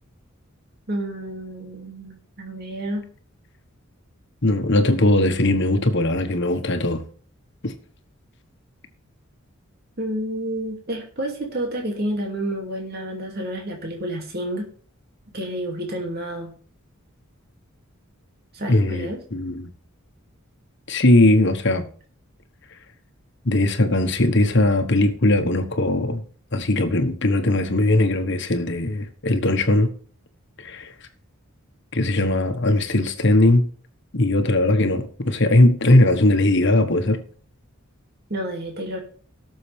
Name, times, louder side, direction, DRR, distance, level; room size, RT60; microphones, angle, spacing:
voice 1, 0.9-3.0 10.0-14.6 15.3-16.5 18.5-19.2 38.3-39.0, right 1 dB, 50° right, 2.7 m, -29 dB
voice 2, 4.4-7.0 7.6-7.7 18.7-19.7 20.9-21.8 23.4-26.2 26.5-29.9 30.6-30.9 31.9-33.6 34.1-37.2, left 1 dB, 55° left, 1.4 m, -19 dB
17.5 x 6.9 x 3.5 m
head